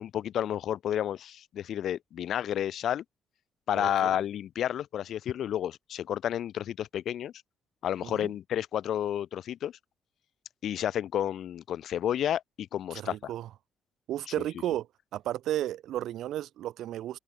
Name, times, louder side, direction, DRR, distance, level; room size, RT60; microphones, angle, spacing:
voice 1, 0.0-3.0 3.7-7.3 7.8-9.7 10.6-13.3, left 10 dB, 70° left, 1.1 m, -31 dB
voice 2, 3.7-4.2 8.0-8.3 12.9-13.5 14.1-14.9 15.1-17.2, right 12 dB, 80° right, 1.8 m, -33 dB
cardioid pair, 90°, 0 cm